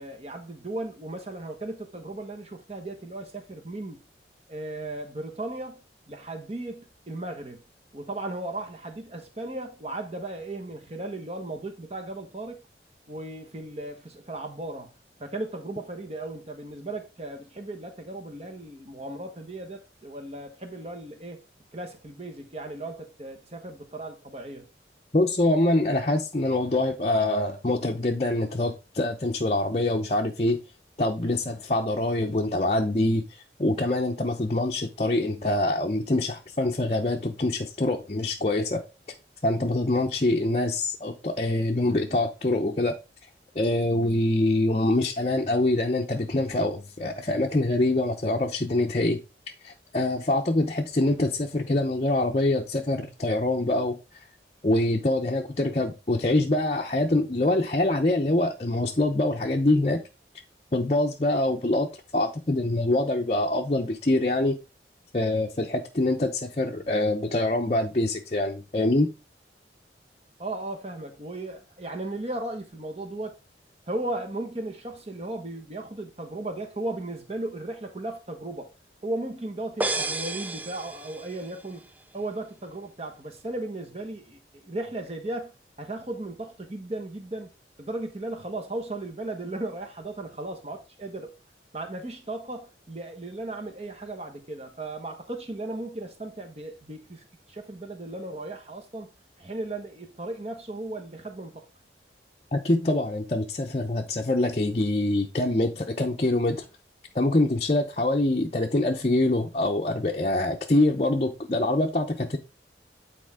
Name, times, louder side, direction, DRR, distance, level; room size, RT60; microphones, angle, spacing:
voice 1, 0.0-4.0 4.5-5.8 6.1-7.6 7.9-12.6 13.1-14.9 15.2-21.4 21.7-24.7 70.4-73.4 73.9-78.7 79.0-81.9 82.1-85.5 85.8-87.5 87.8-91.3 91.7-99.1 99.4-101.6, right 2 dB, 35° right, 1.3 m, -36 dB
voice 2, 25.1-30.6 31.0-38.8 39.4-42.9 43.6-49.2 49.6-54.2 54.6-60.0 60.7-64.5 65.1-69.1 102.5-106.7 107.1-112.4, left 2 dB, 35° left, 0.7 m, -25 dB
sound 1, 79.8-81.6, right 2 dB, 10° right, 0.3 m, -31 dB
9.1 x 4.2 x 3.6 m
head